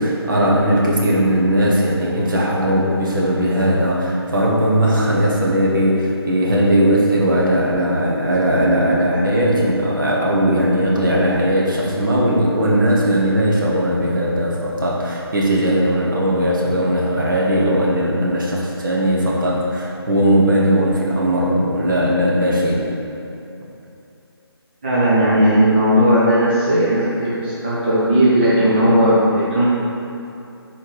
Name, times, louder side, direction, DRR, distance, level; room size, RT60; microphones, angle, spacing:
voice 1, 0.0-22.8, equal, 50° right, -4 dB, 1.3 m, -18 dB
voice 2, 24.8-29.6, equal, 25° right, -10 dB, 0.8 m, -16 dB
5.7 x 4.4 x 4.8 m, 2.7 s
hypercardioid pair, 175°, 14 cm